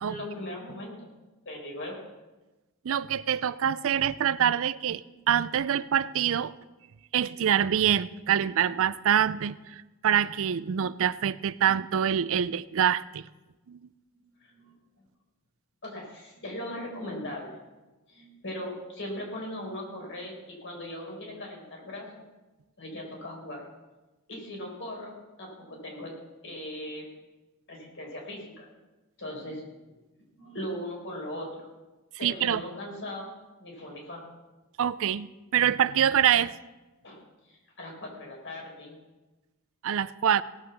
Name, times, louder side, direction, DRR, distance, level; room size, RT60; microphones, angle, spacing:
voice 1, 0.1-1.1 1.4-2.0 5.1-5.2 14.1-14.7 15.8-17.6 18.1-22.2 22.8-23.7 24.3-26.1 26.4-27.1 27.7-28.7 29.2-29.9 30.4-31.7 32.2-33.3 33.6-34.2 37.0-37.2 37.5-39.0, left 1 dB, 60° left, -1 dB, 4.5 m, -39 dB
voice 2, 2.8-6.5 7.1-13.2 13.7-13.8 32.2-32.6 34.8-36.5 39.8-40.4, right 9 dB, 65° right, 17 dB, 0.4 m, -25 dB
18.0 x 6.5 x 7.1 m, 1.1 s
head